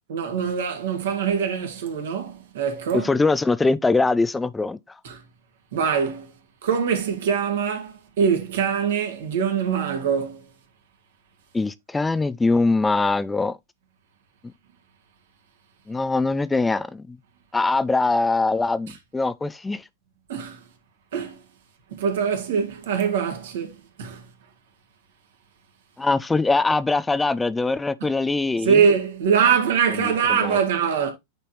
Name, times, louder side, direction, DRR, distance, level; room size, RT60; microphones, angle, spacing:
voice 1, 0.1-3.1 5.0-5.2 5.7-6.3 6.6-10.4 20.3-20.6 21.1-21.4 21.9-24.2 28.6-31.1, right 6 dB, 60° right, 1.9 m, -23 dB
voice 2, 2.9-4.8 11.5-13.6 15.9-17.2 17.5-19.8 26.0-28.8 29.9-30.6, left 3 dB, 10° left, 0.5 m, -22 dB
9.0 x 4.1 x 3.1 m
figure-of-eight pair, 90°, 0 cm